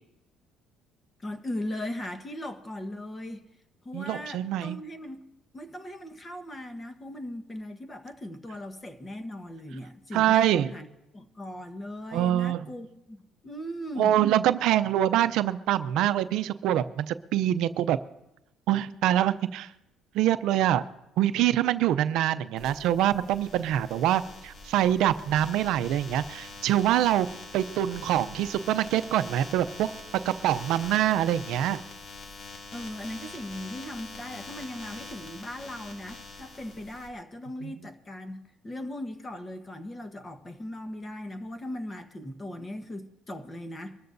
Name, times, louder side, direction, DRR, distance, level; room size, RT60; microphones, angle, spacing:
voice 1, 1.2-3.5 3.8-5.2 5.5-10.9 11.1-14.2 32.7-44.0, left 1 dB, 25° left, 1.3 m, -38 dB
voice 2, 3.9-4.8 10.1-10.7 12.1-12.7 14.0-18.0 18.7-19.7 20.1-20.8 21.2-27.3 27.5-29.9 30.2-31.8 37.6-37.7, right 12 dB, 75° right, 0.5 m, -25 dB
sound 1, 22.6-37.1, left 3 dB, 50° left, 2.4 m, -44 dB
23.5 x 13.5 x 2.7 m
cardioid pair, 105°, 0 cm